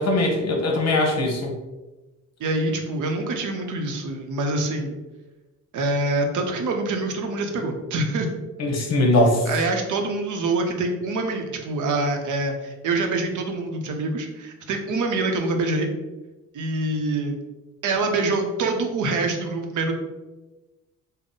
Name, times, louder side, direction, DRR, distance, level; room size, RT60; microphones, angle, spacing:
voice 1, 0.0-1.5 8.6-9.5, left 1 dB, 50° left, 1 dB, 0.9 m, -21 dB
voice 2, 2.4-5.0 5.7-8.3 9.5-15.9 16.5-17.3 17.8-19.9, right 2 dB, 70° right, 4 dB, 0.7 m, -25 dB
3.7 x 2.0 x 3.8 m, 1.1 s
cardioid pair, 120°, 32 cm